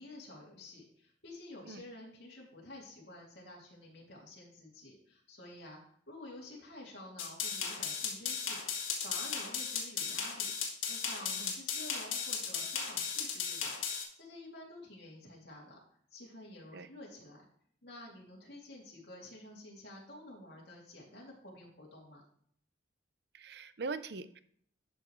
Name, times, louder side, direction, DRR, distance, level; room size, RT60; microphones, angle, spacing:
voice 1, 0.0-5.8 6.1-10.5 10.9-15.8 16.1-17.5 17.8-22.2, left 1 dB, 55° left, -3 dB, 2.5 m, -51 dB
sound 1, 7.2-14.0, left 6 dB, 85° left, 1.8 m, -36 dB
voice 2, 23.3-24.4, right 4 dB, 55° right, 12 dB, 0.5 m, -41 dB
11.0 x 6.3 x 3.1 m, 0.62 s
head